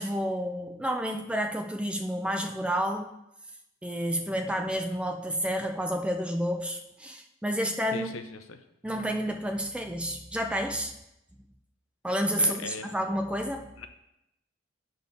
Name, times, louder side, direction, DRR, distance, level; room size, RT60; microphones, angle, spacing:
voice 1, 0.0-3.1 3.8-8.1 8.8-10.9 12.0-13.7, equal, 5° right, 4 dB, 0.4 m, -30 dB
voice 2, 7.9-8.6 12.4-12.9 13.8-13.9, left 4 dB, 80° left, 8 dB, 0.7 m, -39 dB
8.2 x 4.1 x 5.3 m, 0.86 s
head